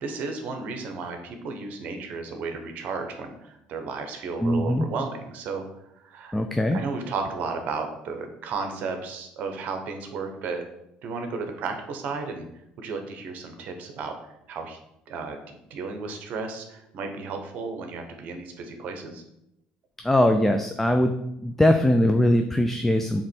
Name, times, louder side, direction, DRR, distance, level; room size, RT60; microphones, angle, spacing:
voice 1, 0.0-5.6 5.9-6.4 6.7-10.6 11.0-12.5 12.8-14.2 14.5-14.8 15.1-15.4 15.7-19.2, right 4 dB, 60° right, 5 dB, 1.0 m, -33 dB
voice 2, 4.4-4.8 6.3-6.8 20.0-21.2 21.4-23.3, left 1 dB, 5° left, 5 dB, 0.4 m, -21 dB
7.4 x 3.1 x 4.5 m, 0.82 s
cardioid pair, 115°, 3 cm